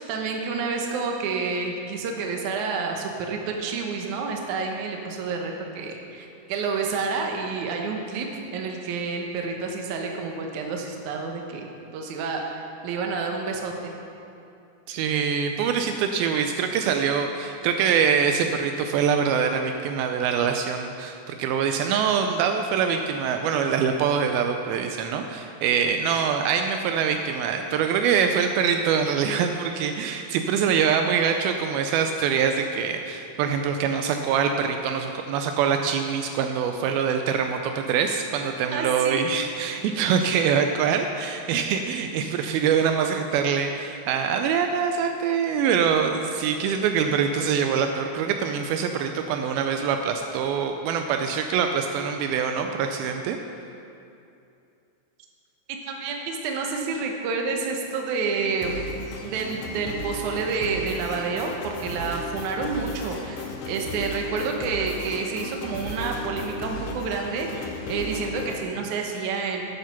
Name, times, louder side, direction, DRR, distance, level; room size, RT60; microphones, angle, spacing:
voice 1, 0.0-11.7 11.9-13.9 38.7-39.2 55.7-58.8 59.2-69.6, right 4 dB, 65° right, 2 dB, 2.1 m, -29 dB
voice 2, 14.9-53.4, right 7 dB, 85° right, 5 dB, 2.3 m, -24 dB
sound 1, 58.6-68.6, left 2 dB, 70° left, 2.1 m, -35 dB
9.3 x 8.7 x 5.8 m, 2.6 s
omnidirectional pair, 4.4 m